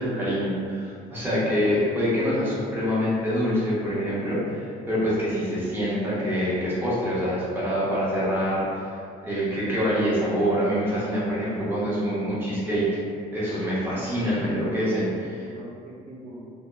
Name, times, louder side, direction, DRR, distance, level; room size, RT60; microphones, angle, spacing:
voice 1, 0.0-8.8 9.2-12.9 13.3-15.5, equal, 10° right, -9 dB, 0.8 m, -25 dB
voice 2, 1.4-2.7 15.4-16.5, right 1 dB, 50° right, -4 dB, 0.5 m, -40 dB
2.7 x 2.0 x 2.3 m, 2.3 s
cardioid pair, 110°, 17 cm